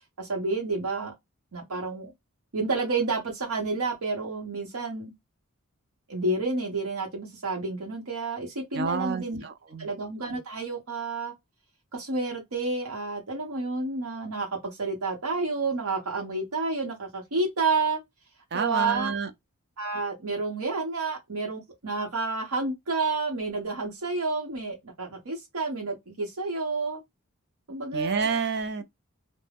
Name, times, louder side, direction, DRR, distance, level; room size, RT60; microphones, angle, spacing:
voice 1, 0.2-1.1 1.5-2.1 2.5-5.1 6.1-9.4 9.8-11.3 11.9-18.0 18.5-19.1 19.8-27.0 27.7-28.3, right 3 dB, 85° right, 0.8 m, -30 dB
voice 2, 8.7-9.9 18.5-19.3 27.9-28.8, right 5 dB, 45° right, 0.4 m, -29 dB
2.3 x 2.1 x 3.3 m
head